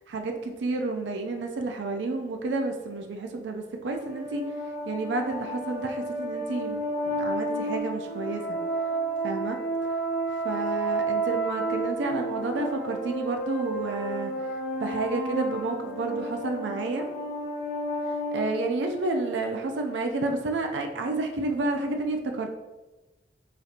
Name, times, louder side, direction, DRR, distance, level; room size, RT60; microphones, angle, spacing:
voice 1, 0.1-4.4 4.9-8.6 9.2-9.6 10.4-14.3 14.8-17.1 18.3-22.5, right 3 dB, 75° right, 4 dB, 0.4 m, -30 dB
sound 1, 3.9-19.4, right 2 dB, ahead, 1.1 m, -31 dB
5.0 x 2.7 x 2.4 m, 1.1 s
head